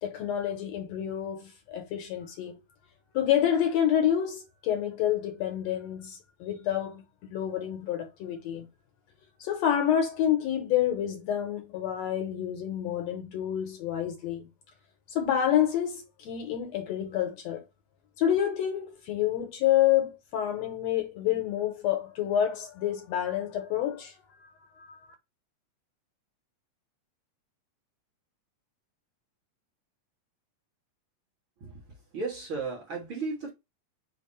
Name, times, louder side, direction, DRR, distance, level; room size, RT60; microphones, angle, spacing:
voice 1, 0.0-2.6 3.1-8.7 9.4-14.5 15.1-17.6 18.2-24.2 24.8-25.0, left 10 dB, 75° left, 1.7 m, -28 dB
voice 2, 31.6-33.5, right 4 dB, 55° right, 1.6 m, -35 dB
5.3 x 2.0 x 4.2 m
omnidirectional pair, 3.4 m